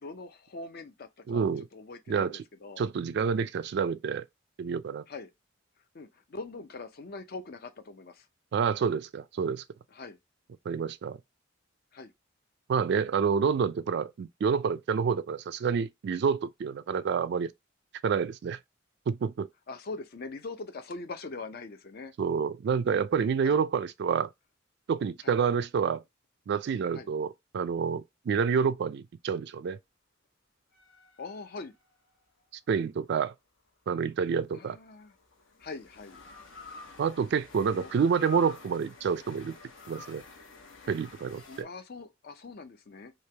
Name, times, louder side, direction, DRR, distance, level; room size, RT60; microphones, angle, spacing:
voice 1, 0.0-2.8 5.1-5.3 5.9-8.2 9.9-10.2 11.9-12.1 19.7-22.1 23.4-23.6 25.2-25.4 26.9-27.1 31.2-31.7 34.5-35.1 35.6-36.2 37.7-37.9 41.5-43.1, left 3 dB, 50° left, 0.5 m, -42 dB
voice 2, 1.3-1.7 2.1-2.4 2.8-4.2 4.6-5.0 8.5-9.6 10.7-11.2 12.7-17.5 18.0-18.6 19.1-19.5 22.2-24.3 24.9-26.0 26.5-29.8 32.7-33.3 33.9-34.8 37.0-39.5 39.9-40.2 40.9-41.7, right 6 dB, 55° right, 0.3 m, -28 dB
sound 1, 30.7-32.2 34.1-41.6, left 3 dB, 70° left, 1.0 m, -49 dB
3.2 x 2.9 x 3.3 m
head